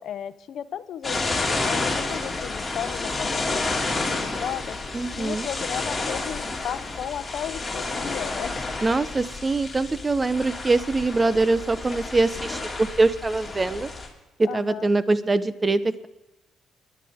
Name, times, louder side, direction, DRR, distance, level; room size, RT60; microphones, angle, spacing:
voice 1, 0.0-4.8 5.2-8.6 14.4-14.9, left 9 dB, 70° left, 13 dB, 0.7 m, -34 dB
sound 1, 1.0-14.1, left 3 dB, 20° left, 2.8 m, -30 dB
voice 2, 4.9-5.5 8.8-13.9 14.4-16.1, right 3 dB, 25° right, 14 dB, 0.8 m, -23 dB
28.5 x 10.5 x 3.7 m, 0.99 s
cardioid pair, 90°, 0 cm